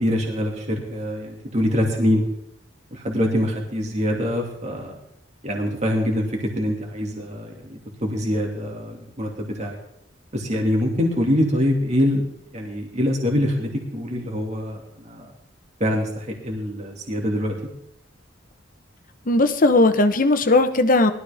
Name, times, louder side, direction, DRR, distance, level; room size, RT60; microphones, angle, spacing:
voice 1, 0.0-2.2 2.9-4.9 5.4-9.8 10.3-12.2 12.5-15.3 15.8-17.6, equal, 40° right, 0 dB, 2.5 m, -24 dB
voice 2, 19.3-21.1, left 2 dB, 45° left, 9 dB, 1.0 m, -17 dB
20.0 x 13.0 x 3.6 m, 0.75 s
head